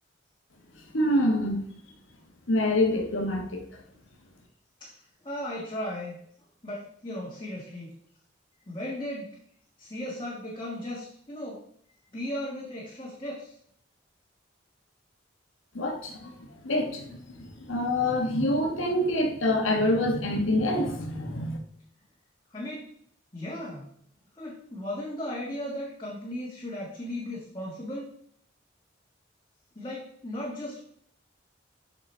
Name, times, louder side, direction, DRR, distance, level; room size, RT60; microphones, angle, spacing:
voice 1, 0.9-1.6 2.5-3.6 15.7-16.1 16.6-21.6, left 1 dB, 85° left, 2 dB, 1.4 m, -26 dB
voice 2, 5.2-6.1 6.6-7.9 8.7-9.4 9.8-11.6 12.1-13.5 22.5-22.9 23.3-23.9 24.4-28.1 29.7-30.8, left 1 dB, 25° left, -5 dB, 1.6 m, -36 dB
7.5 x 6.1 x 4.5 m, 0.64 s
head